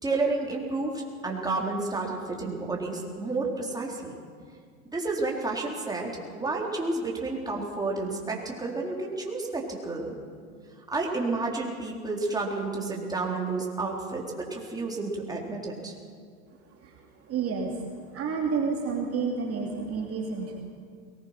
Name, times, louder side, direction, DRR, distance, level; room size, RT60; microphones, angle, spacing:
voice 1, 0.0-4.2 4.9-10.2 10.9-15.9, right 3 dB, 10° right, -1 dB, 3.8 m, -31 dB
voice 2, 17.3-17.7 18.1-20.6, right 5 dB, 35° right, 0 dB, 2.7 m, -29 dB
22.0 x 19.5 x 6.0 m, 2.1 s
hypercardioid pair, 105°, 41 cm